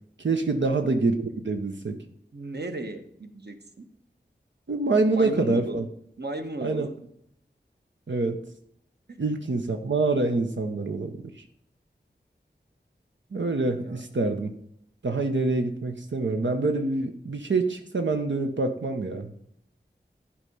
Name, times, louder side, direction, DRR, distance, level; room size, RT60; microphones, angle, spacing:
voice 1, 0.2-2.0 4.7-5.9 6.6-6.9 8.1-8.4 9.2-11.3 13.3-14.5 15.0-19.3, right 3 dB, 90° right, 4 dB, 0.8 m, -26 dB
voice 2, 2.3-3.8 5.2-5.9 6.2-6.9 9.1-9.2 13.8-14.0, right 2 dB, 65° right, 6 dB, 1.2 m, -35 dB
11.5 x 4.8 x 5.4 m, 0.72 s
wide cardioid pair, 55°, 18 cm